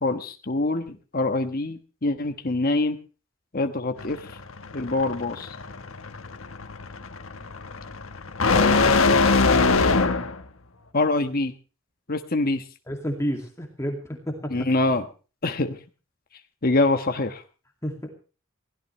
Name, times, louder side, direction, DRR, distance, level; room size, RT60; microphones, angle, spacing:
voice 1, 0.0-3.0 3.5-4.4 4.7-5.6 10.9-11.5 12.1-12.6 14.5-15.0 15.4-15.8 16.6-17.4, left 2 dB, 45° left, 5 dB, 1.2 m, -25 dB
sound 1, 4.0-10.4, left 4 dB, 80° left, 1.3 m, -22 dB
voice 2, 8.4-9.3 12.9-14.5 17.8-18.1, equal, 15° left, 1 dB, 2.4 m, -31 dB
22.0 x 16.5 x 3.2 m, 0.36 s
head